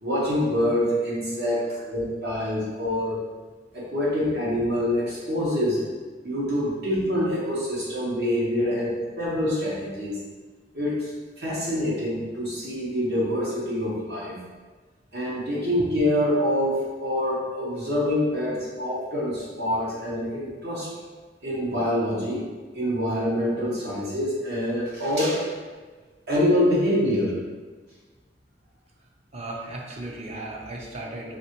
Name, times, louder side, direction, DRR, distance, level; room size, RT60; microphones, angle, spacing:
voice 1, 0.0-3.2 3.7-5.8 6.2-8.9 9.2-10.2 10.7-11.1 11.4-14.4 15.1-20.9 21.4-22.4 22.7-25.5 26.3-27.3, left 1 dB, 65° right, -6 dB, 1.0 m, -25 dB
voice 2, 29.3-31.4, right 2 dB, 35° right, -1 dB, 0.6 m, -36 dB
4.3 x 3.3 x 3.0 m, 1.4 s
head